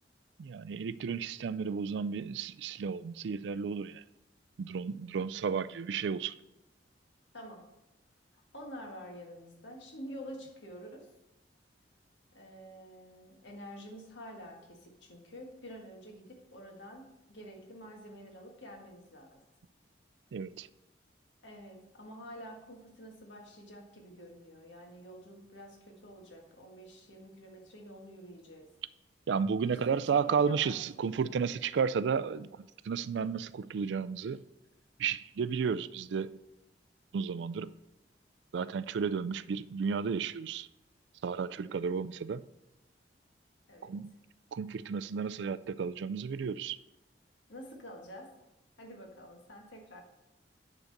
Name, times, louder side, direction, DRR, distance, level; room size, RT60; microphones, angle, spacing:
voice 1, 0.4-4.0 4.6-6.3 20.3-20.7 29.3-34.4 35.0-36.3 37.1-37.7 38.5-40.7 41.2-42.4 43.8-44.1 44.5-46.8, right 6 dB, 75° right, 0.3 m, -33 dB
voice 2, 7.3-7.6 8.5-11.1 12.3-19.4 21.4-28.7 29.6-30.8 43.7-44.0 47.5-48.3 48.8-50.0, equal, 90° left, 1.7 m, -48 dB
9.8 x 3.9 x 6.4 m
head